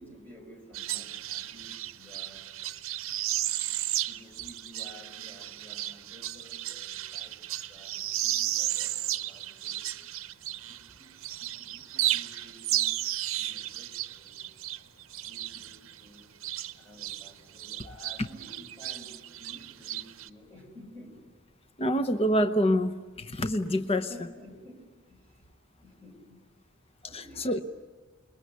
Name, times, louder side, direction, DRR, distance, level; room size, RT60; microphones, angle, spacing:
voice 1, 0.0-2.5 4.1-9.8 10.5-11.1 11.4-12.9 13.4-14.4 15.2-16.3 16.8-21.3 23.8-25.4 25.8-26.4 27.0-27.6, equal, 10° left, 1 dB, 5.5 m, -52 dB
sound 1, 0.7-10.9 11.2-17.3 17.6-20.3, right 14 dB, 75° right, 0.7 m, -34 dB
voice 2, 21.8-24.1 27.1-27.6, equal, 30° left, 9 dB, 0.8 m, -26 dB
28.5 x 21.5 x 8.3 m, 1.3 s
head